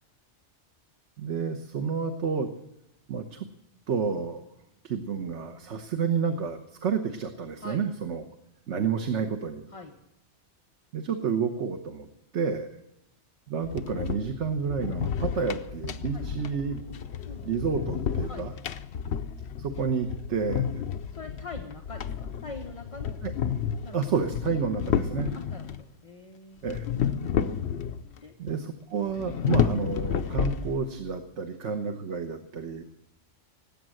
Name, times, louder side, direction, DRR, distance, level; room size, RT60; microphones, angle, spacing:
voice 1, 1.2-2.5 3.1-3.5 3.9-4.4 4.8-8.2 8.7-9.7 10.9-12.1 12.3-12.7 13.5-16.8 17.4-18.5 19.6-20.7 23.2-23.3 23.9-25.3 26.6-26.9 28.4-32.8, right 6 dB, 75° right, 6 dB, 1.3 m, -30 dB
sound 1, 13.6-25.8 26.7-28.2 28.5-28.6 29.1-31.1, left 8 dB, 65° left, 0.9 m, -31 dB
voice 2, 21.1-23.2 23.8-24.0 25.3-26.6 28.2-28.3, left 3 dB, 30° left, 1 dB, 1.2 m, -43 dB
19.5 x 8.5 x 7.7 m, 0.85 s
omnidirectional pair, 1.2 m